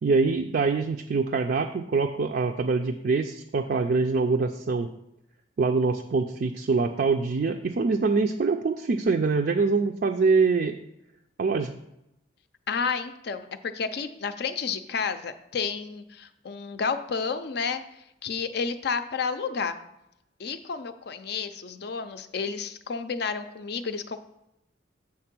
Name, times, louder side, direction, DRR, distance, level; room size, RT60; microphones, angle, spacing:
voice 1, 0.0-4.9 5.6-10.7 11.4-11.7, right 4 dB, 50° right, 4 dB, 0.4 m, -24 dB
voice 2, 12.7-17.8 18.2-19.8 20.4-24.2, left 5 dB, 60° left, 10 dB, 0.5 m, -31 dB
7.7 x 3.6 x 6.0 m, 0.85 s
head